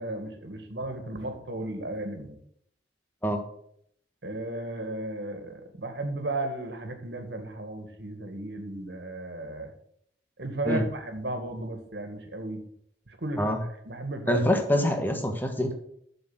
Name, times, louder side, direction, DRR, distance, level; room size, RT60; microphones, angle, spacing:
voice 1, 0.0-2.3 4.2-9.7 10.4-12.6 13.1-13.4 13.8-14.4, right 1 dB, 70° right, 5 dB, 2.0 m, -34 dB
voice 2, 14.3-15.7, equal, 10° left, 4 dB, 1.4 m, -25 dB
7.7 x 6.7 x 7.9 m, 0.70 s
head